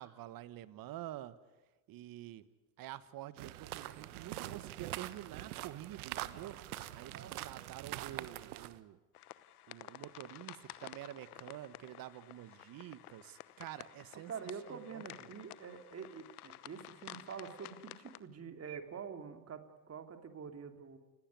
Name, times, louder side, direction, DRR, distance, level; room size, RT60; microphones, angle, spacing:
voice 1, 0.0-1.4 1.9-2.5 2.8-6.6 6.9-9.0 9.7-14.3 14.7-15.0, right 14 dB, 50° right, 15 dB, 1.6 m, -48 dB
sound 1, 3.4-8.8, right 15 dB, 75° right, 1.3 m, -44 dB
sound 2, 9.1-18.2, left 14 dB, 80° left, 1.1 m, -52 dB
voice 2, 14.3-21.0, right 6 dB, 35° right, 7 dB, 3.2 m, -46 dB
29.5 x 17.0 x 9.7 m, 1.2 s
hypercardioid pair, 75°, 44 cm